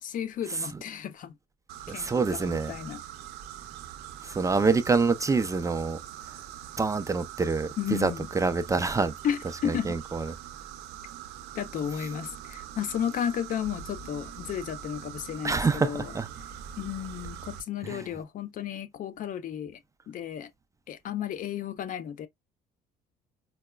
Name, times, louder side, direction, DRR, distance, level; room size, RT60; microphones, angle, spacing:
voice 1, 0.1-1.3 1.9-3.0 7.8-8.3 9.2-10.0 11.6-16.1 16.8-19.8 20.1-20.5 20.9-22.3, left 9 dB, 50° left, 0.5 m, -33 dB
sound 1, 1.7-17.6, right 10 dB, 80° right, 0.5 m, -43 dB
voice 2, 1.9-2.7 4.2-6.0 6.8-9.1 9.6-10.3 15.4-16.3 17.8-18.0, right 4 dB, 20° right, 0.4 m, -26 dB
4.7 x 2.1 x 2.2 m
cardioid pair, 110°, 17 cm